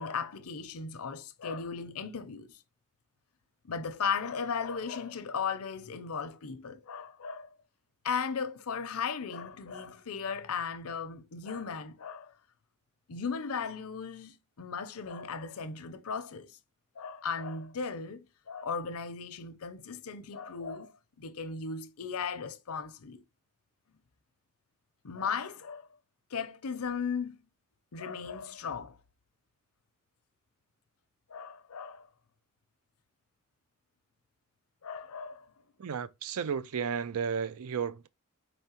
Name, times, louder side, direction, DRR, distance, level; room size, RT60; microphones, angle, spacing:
voice 1, 0.0-2.5 3.7-7.5 8.0-12.3 13.1-16.6 17.0-23.2 25.0-25.9 26.3-27.4 27.9-29.0 31.3-32.1 34.8-35.5, left 6 dB, 75° left, 0.6 m, -36 dB
voice 2, 35.8-38.1, right 7 dB, 75° right, 0.4 m, -33 dB
4.3 x 3.5 x 2.8 m
head